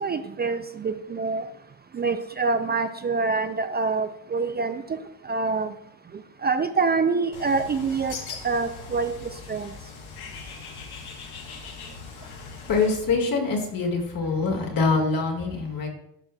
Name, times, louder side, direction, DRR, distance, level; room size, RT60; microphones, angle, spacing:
voice 1, 0.0-1.5 1.9-5.0 5.2-5.7 6.4-8.2 8.4-9.7, right 4 dB, 25° right, 0.4 m, -26 dB
Bird, 7.3-13.0, left 5 dB, 75° left, 1.3 m, -40 dB
voice 2, 12.7-15.9, left 4 dB, 60° left, 1.9 m, -24 dB
11.0 x 5.5 x 2.3 m
cardioid pair, 85°, 38 cm